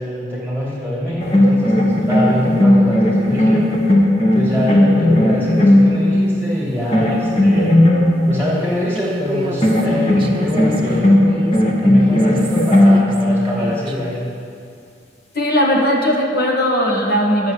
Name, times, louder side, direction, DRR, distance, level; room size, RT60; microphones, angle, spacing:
voice 1, 0.0-3.7 4.2-7.8 8.3-11.2 11.8-14.3, left 1 dB, 10° left, -7 dB, 2.6 m, -24 dB
sound 1, 1.2-6.4 6.9-8.5 9.6-13.5, left 1 dB, 35° left, 1.5 m, -15 dB
Human voice, 8.9-14.2, right 1 dB, 30° right, 1.0 m, -30 dB
voice 2, 15.3-17.5, equal, 50° left, -1 dB, 1.9 m, -17 dB
12.0 x 6.7 x 8.7 m, 2.4 s
head